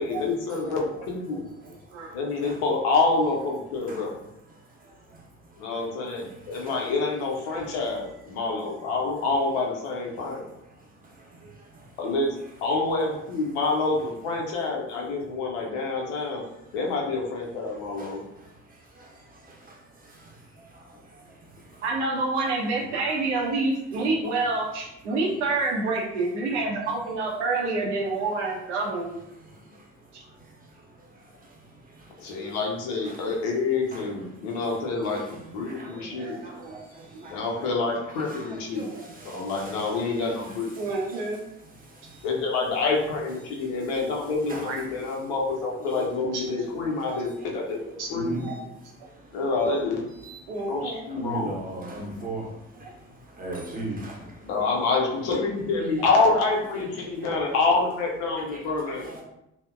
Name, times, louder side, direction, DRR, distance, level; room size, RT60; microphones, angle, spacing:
voice 1, 0.0-1.4 2.1-4.1 5.6-10.4 12.0-12.3 12.6-16.4 16.7-18.2 32.2-36.4 37.3-38.9 39.2-40.7 42.2-48.4 49.3-50.0 50.7-51.5 54.5-59.1, left 3 dB, 70° left, -1 dB, 0.6 m, -27 dB
voice 2, 21.8-29.2 35.7-35.8 36.1-36.8 37.1-37.4 38.8-39.0 39.3-39.5 40.8-41.4 43.6-43.9 44.7-44.8 46.0-46.1 46.3-46.4 46.8-47.2 48.0-48.5 50.5-51.0 52.2-52.9 54.4-54.5 56.0-56.2 59.0-59.2, right 3 dB, 80° right, -1 dB, 0.6 m, -29 dB
voice 3, 48.1-48.4 50.2-50.4 51.2-52.4 53.4-54.1 57.3-57.4 58.9-59.0, right 2 dB, 25° right, -1 dB, 0.8 m, -34 dB
2.7 x 2.1 x 2.3 m, 0.82 s
figure-of-eight pair, 45°, 35 cm